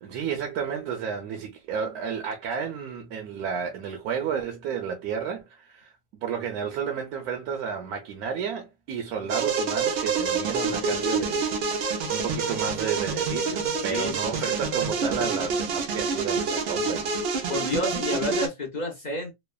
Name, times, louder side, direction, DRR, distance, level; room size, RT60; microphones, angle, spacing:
voice 1, 0.0-17.1 17.4-17.5, right 7 dB, 80° right, 1.1 m, -32 dB
sound 1, 9.3-18.5, right 4 dB, 60° right, 0.6 m, -27 dB
voice 2, 17.5-19.3, left 2 dB, 60° left, 0.4 m, -29 dB
3.0 x 2.1 x 2.2 m
omnidirectional pair, 1.6 m